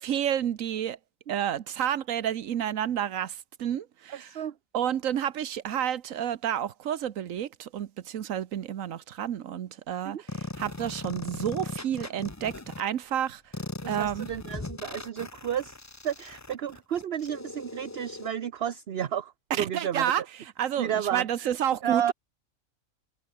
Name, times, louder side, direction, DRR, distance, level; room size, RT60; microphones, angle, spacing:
voice 1, 0.0-1.0 1.3-4.3 4.7-10.2 10.6-13.4 13.9-14.3 19.5-20.2 20.6-22.1, right 10 dB, 75° right, 1.3 m, -30 dB
voice 2, 4.1-4.5 10.0-10.2 13.8-15.8 16.0-20.1 20.8-21.5 21.8-22.1, right 9 dB, 55° right, 1.0 m, -32 dB
sound 1, 10.3-12.8 13.5-18.3, left 2 dB, 15° left, 0.6 m, -39 dB
omnidirectional pair, 1.4 m